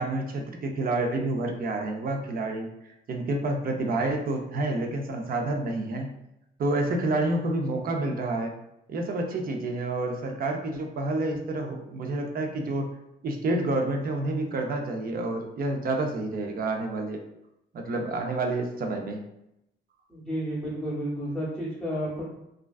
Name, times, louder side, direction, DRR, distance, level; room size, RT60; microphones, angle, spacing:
voice 1, 0.0-2.7 3.1-6.1 6.6-8.5 8.9-12.9 13.2-17.2 17.7-19.2, right 2 dB, 50° right, 3 dB, 0.5 m, -29 dB
voice 2, 20.1-22.2, equal, ahead, -10 dB, 0.8 m, -31 dB
2.4 x 2.2 x 2.3 m, 0.84 s
cardioid pair, 90°, 20 cm